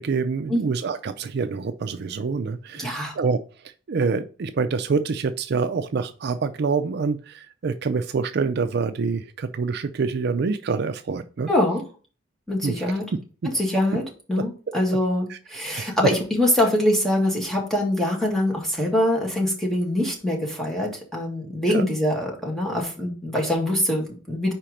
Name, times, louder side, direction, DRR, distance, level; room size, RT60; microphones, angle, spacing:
voice 1, 0.0-3.4 3.9-11.5 12.6-12.9 13.4-13.6 15.7-15.9 21.7-21.8, right 4 dB, 60° right, 10 dB, 0.4 m, -26 dB
voice 2, 2.8-3.2 11.5-11.8 12.5-13.1 13.5-24.5, left 1 dB, ahead, -1 dB, 1.8 m, -24 dB
4.9 x 4.4 x 5.0 m, 0.37 s
head